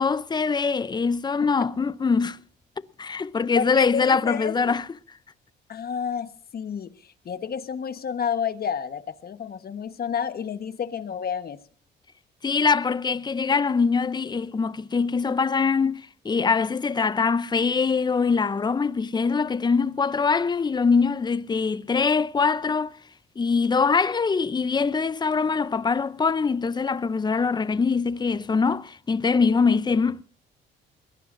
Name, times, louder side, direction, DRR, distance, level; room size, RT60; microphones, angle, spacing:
voice 1, 0.0-2.4 3.0-4.9 12.4-22.9 23.4-30.2, left 5 dB, 20° left, 0.6 m, -23 dB
voice 2, 3.5-4.8 5.7-11.6, left 7 dB, 50° left, 1.3 m, -30 dB
21.5 x 18.0 x 2.6 m
cardioid pair, 90°, 20 cm